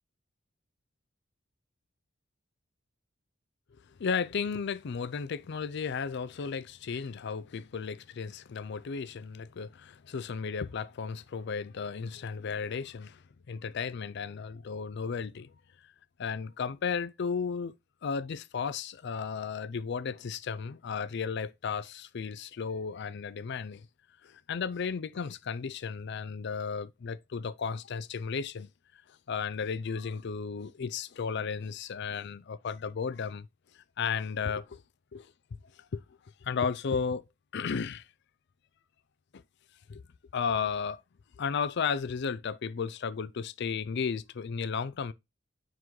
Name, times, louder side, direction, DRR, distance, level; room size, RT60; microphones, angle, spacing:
voice 1, 3.9-15.6 16.2-17.8 18.0-23.9 24.2-33.5 33.7-34.8 35.1-35.3 35.8-36.0 36.4-37.2 37.5-38.1 39.3-39.4 39.9-40.0 40.3-41.0 41.4-45.1, left 6 dB, 60° left, 0.4 m, -34 dB
9.4 x 3.8 x 3.1 m
head